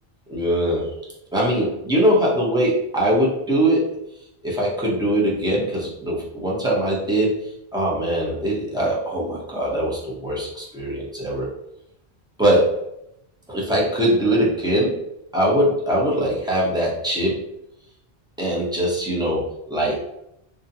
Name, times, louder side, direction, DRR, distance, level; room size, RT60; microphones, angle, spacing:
voice 1, 0.3-0.9 1.3-4.0 4.4-11.5 12.4-12.8 13.5-15.0 15.3-17.4 18.4-20.0, right 1 dB, 5° right, -5 dB, 0.5 m, -22 dB
2.4 x 2.1 x 2.6 m, 0.79 s
omnidirectional pair, 1.0 m